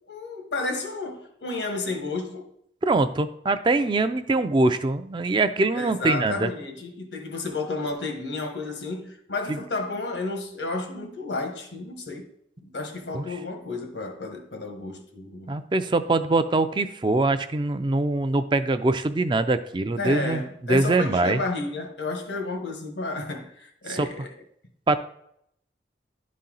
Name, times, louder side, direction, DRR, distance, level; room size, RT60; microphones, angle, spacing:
voice 1, 0.1-2.5 5.8-12.3 12.6-15.5 20.0-24.3, left 3 dB, 90° left, 1.4 m, -32 dB
voice 2, 2.8-6.5 9.5-9.6 13.1-13.2 15.5-21.4 23.9-24.1 24.9-25.0, right 2 dB, 25° right, 0.4 m, -23 dB
11.5 x 4.2 x 3.9 m
head